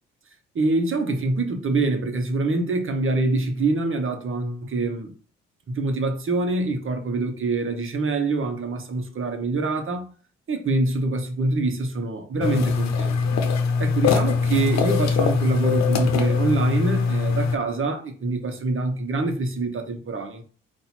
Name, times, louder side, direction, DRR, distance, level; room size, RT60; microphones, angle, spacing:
voice 1, 0.5-5.1 5.7-10.1 10.5-13.2 13.8-20.4, right 3 dB, 40° right, 1.1 m, -25 dB
sound 1, 12.4-17.6, left 5 dB, 60° left, 0.8 m, -22 dB
4.1 x 2.6 x 4.3 m
hypercardioid pair, 45°, 31 cm